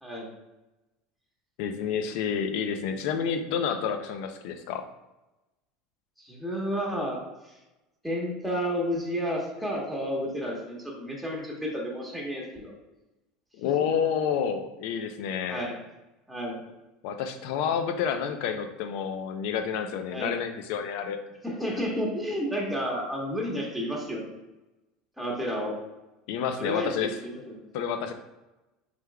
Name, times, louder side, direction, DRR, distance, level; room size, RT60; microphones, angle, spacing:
voice 1, 1.6-4.9 13.6-15.7 17.0-21.2 26.3-27.1 27.7-28.1, left 7 dB, 70° left, 7 dB, 0.5 m, -29 dB
voice 2, 6.2-7.2 8.0-12.7 13.6-13.9 15.5-15.8 16.3-16.6 20.1-20.3 21.4-24.4 25.2-25.8 26.6-27.6, equal, ahead, -3 dB, 1.2 m, -31 dB
5.2 x 3.3 x 2.3 m, 1.0 s
supercardioid pair, 115°, 0 cm